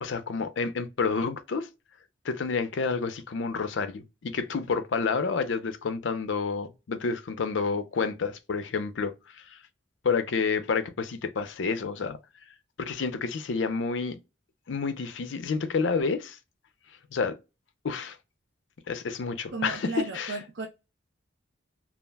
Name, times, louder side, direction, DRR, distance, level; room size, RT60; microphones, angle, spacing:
voice 1, 0.0-1.7 2.2-9.6 10.0-12.2 12.8-14.2 14.7-16.4 17.1-17.3 17.8-18.2 18.9-19.9 20.1-20.4, left 5 dB, 70° left, 0.5 m, -29 dB
voice 2, 19.5-20.7, right 3 dB, 70° right, 0.5 m, -34 dB
2.3 x 2.1 x 3.3 m
head